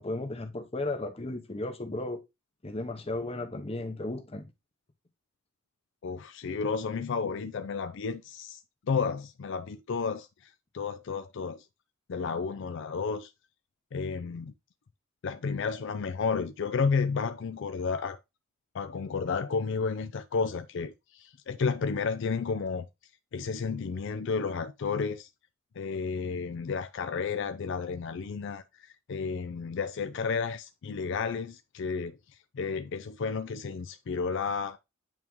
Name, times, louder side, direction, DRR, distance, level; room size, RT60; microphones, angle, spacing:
voice 1, 0.0-2.2 2.6-4.5, left 2 dB, 30° left, 0.8 m, -35 dB
voice 2, 6.0-8.6 8.9-11.7 12.1-13.3 13.9-14.5 15.2-18.2 18.7-22.9 23.3-25.3 25.8-32.2 32.5-34.8, left 5 dB, 65° left, 0.4 m, -32 dB
9.0 x 3.5 x 3.0 m
head